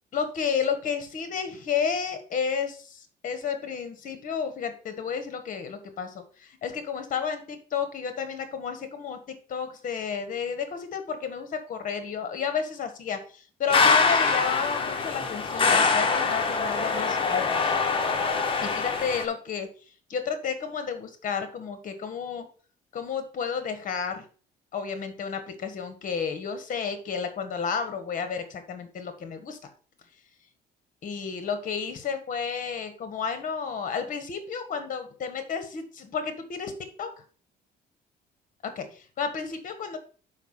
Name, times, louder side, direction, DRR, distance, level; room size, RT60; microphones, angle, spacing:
voice 1, 0.1-17.7 18.6-19.7 20.1-22.5 22.9-24.2 24.7-29.6 31.0-36.7 37.0-37.2 38.6-40.0, left 6 dB, 50° left, 9 dB, 1.5 m, -31 dB
sound 1, 13.7-19.2, left 4 dB, 30° left, 1.3 m, -24 dB
5.8 x 5.2 x 5.7 m, 0.41 s
cardioid pair, 110°, 17 cm